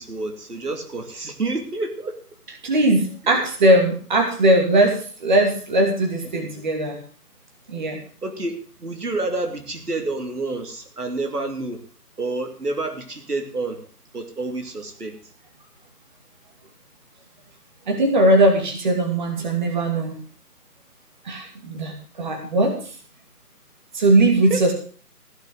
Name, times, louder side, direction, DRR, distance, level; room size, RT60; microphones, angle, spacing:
voice 1, 0.0-2.2 2.5-2.6 3.2-3.4 6.4-6.5 8.2-11.8 12.2-13.8 14.1-15.2 24.5-24.7, right 2 dB, 75° right, 5 dB, 2.9 m, -29 dB
voice 2, 2.6-7.0 7.7-8.0 17.9-20.1 21.2-22.8 23.9-24.7, right 1 dB, 30° right, 2 dB, 2.6 m, -19 dB
16.0 x 6.5 x 7.5 m, 0.42 s
figure-of-eight pair, 160°, 47 cm